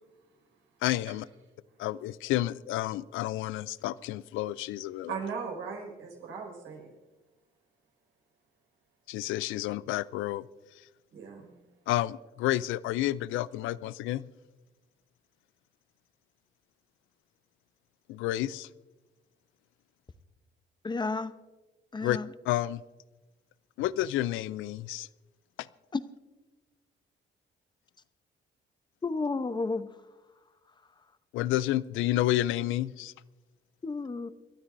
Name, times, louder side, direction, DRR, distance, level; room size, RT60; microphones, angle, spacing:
voice 1, 0.8-1.2 1.8-5.2 9.1-10.5 10.8-10.9 11.9-14.2 18.1-18.7 22.0-22.2 22.5-22.8 23.8-25.1 25.6-25.7 31.3-33.1, left 15 dB, 90° left, 0.4 m, -30 dB
voice 2, 5.1-6.9 11.1-11.5, right 5 dB, 85° right, 5.2 m, -38 dB
voice 3, 20.8-21.3 21.9-22.3 25.9-26.0 29.0-29.9 33.8-34.3, left 3 dB, 20° left, 0.8 m, -31 dB
28.0 x 13.0 x 2.6 m
cardioid pair, 90°, 20 cm